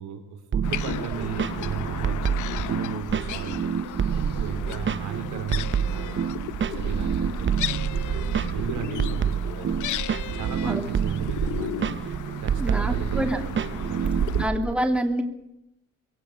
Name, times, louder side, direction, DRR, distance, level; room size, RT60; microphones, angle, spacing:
voice 1, 0.0-3.7 4.1-9.8 10.1-12.0 12.4-14.5, right 8 dB, 85° right, 7 dB, 4.3 m, -36 dB
sound 1, 0.5-14.4, right 7 dB, 40° right, 0.8 m, -29 dB
sound 2, 0.6-14.5, left 13 dB, 80° left, 0.9 m, -36 dB
sound 3, 0.6-14.5, right 7 dB, 60° right, 2.8 m, -32 dB
voice 2, 12.6-13.4 14.4-15.2, right 1 dB, 5° right, 5 dB, 2.9 m, -26 dB
22.0 x 17.0 x 8.4 m, 0.86 s
cardioid pair, 90°, 30 cm